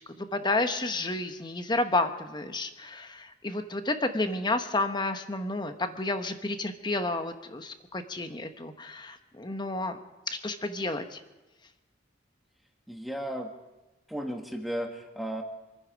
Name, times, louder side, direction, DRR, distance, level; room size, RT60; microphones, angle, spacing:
voice 1, 0.0-10.0 10.3-11.2, left 2 dB, 25° left, 8 dB, 1.0 m, -31 dB
voice 2, 12.9-13.5 14.1-15.4, equal, ahead, 3 dB, 1.5 m, -34 dB
26.5 x 10.0 x 5.1 m, 1.1 s
head